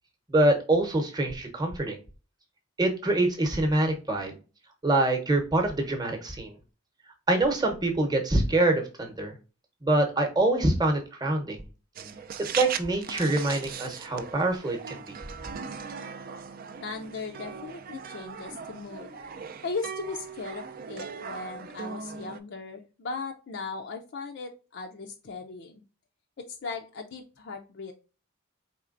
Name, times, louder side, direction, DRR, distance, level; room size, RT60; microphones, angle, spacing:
voice 1, 0.3-2.0 2.8-4.4 4.8-6.5 7.3-9.3 9.8-11.6 12.4-15.1, right 2 dB, 20° right, 4 dB, 0.8 m, -25 dB
sound 1, 12.0-22.4, right 6 dB, 40° right, 0.4 m, -39 dB
voice 2, 16.8-19.1 19.6-25.8 26.4-27.9, left 4 dB, 55° left, 2 dB, 0.4 m, -38 dB
4.3 x 3.2 x 2.4 m, 0.34 s
head